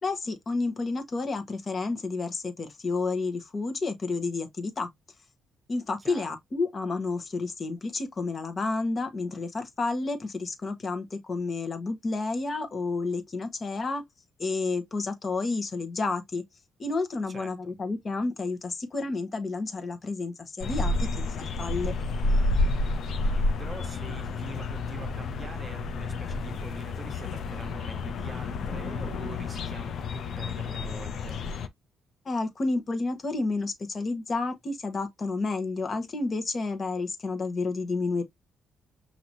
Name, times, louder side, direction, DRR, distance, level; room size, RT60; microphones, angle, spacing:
voice 1, 0.0-4.9 5.7-14.0 14.4-16.4 16.8-21.9 32.2-38.2, left 3 dB, 40° left, 1.2 m, -30 dB
voice 2, 6.0-6.4 17.3-17.7 23.1-31.4, right 3 dB, 30° right, 1.0 m, -44 dB
sound 1, 20.6-31.7, left 2 dB, 65° left, 0.6 m, -30 dB
5.8 x 2.9 x 2.6 m
cardioid pair, 90°, 0 cm